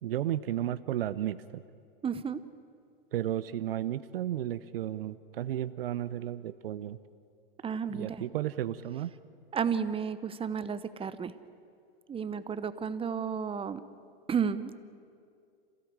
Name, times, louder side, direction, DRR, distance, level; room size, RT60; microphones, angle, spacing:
voice 1, 0.0-1.6 3.1-7.0 7.9-9.1, right 12 dB, 75° right, 15 dB, 0.8 m, -33 dB
voice 2, 2.0-2.4 7.6-8.2 9.5-11.3 12.1-13.8 14.3-14.8, right 7 dB, 20° right, 14 dB, 1.0 m, -32 dB
27.0 x 16.5 x 8.7 m, 2.3 s
hypercardioid pair, 105°, 29 cm